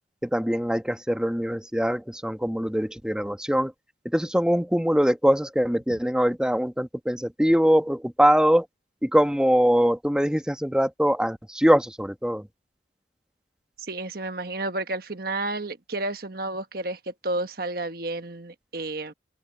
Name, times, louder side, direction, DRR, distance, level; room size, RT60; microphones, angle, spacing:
voice 1, 0.2-3.7 4.0-8.7 9.0-12.5, equal, 5° right, 1.4 m, -22 dB
voice 2, 13.8-19.1, right 2 dB, 50° right, 1.3 m, -31 dB
open air
head